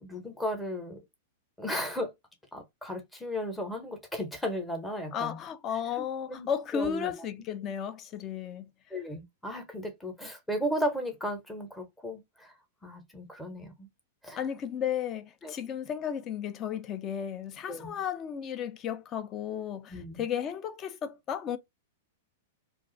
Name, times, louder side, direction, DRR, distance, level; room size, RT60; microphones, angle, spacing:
voice 1, 0.0-1.0 1.6-2.1 2.5-5.4 6.3-7.1 8.9-12.5 12.8-13.9 14.2-14.4 15.4-15.5 17.7-17.9 19.9-20.2, equal, 5° left, 0.8 m, -35 dB
voice 2, 5.1-8.7 14.4-21.6, left 8 dB, 30° left, 0.5 m, -34 dB
2.4 x 2.3 x 3.7 m
hypercardioid pair, 140°, 0 cm